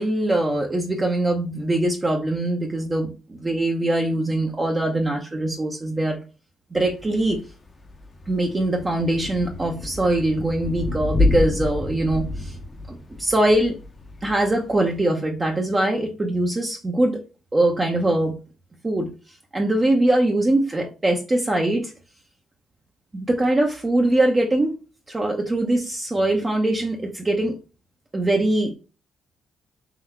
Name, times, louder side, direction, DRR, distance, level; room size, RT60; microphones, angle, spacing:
voice 1, 0.0-6.2 6.7-7.4 8.3-12.6 12.9-13.8 14.2-17.2 17.5-18.3 18.8-19.1 19.5-21.9 23.1-24.7 25.1-27.6 28.1-28.7, right 1 dB, 25° right, 1 dB, 0.7 m, -22 dB
Thunder / Rain, 6.8-15.0, left 2 dB, 30° left, 0.7 m, -29 dB
3.8 x 2.7 x 4.4 m, 0.33 s
cardioid pair, 90°, 0 cm